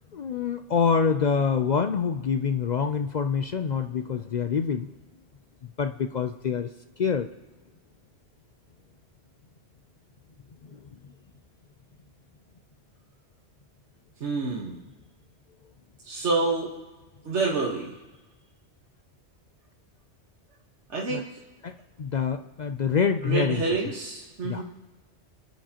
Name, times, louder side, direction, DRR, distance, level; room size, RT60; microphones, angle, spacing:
voice 1, 0.1-4.9 5.6-6.7 7.0-7.3 10.6-11.1 21.1-21.2 21.6-23.8 24.4-24.6, left 6 dB, 55° left, 8 dB, 0.5 m, -26 dB
voice 2, 14.2-14.8 16.0-16.7 17.2-17.9 20.9-21.2 23.2-24.6, right 3 dB, 90° right, -2 dB, 1.7 m, -27 dB
29.0 x 9.9 x 2.9 m, 1.2 s
omnidirectional pair, 1.1 m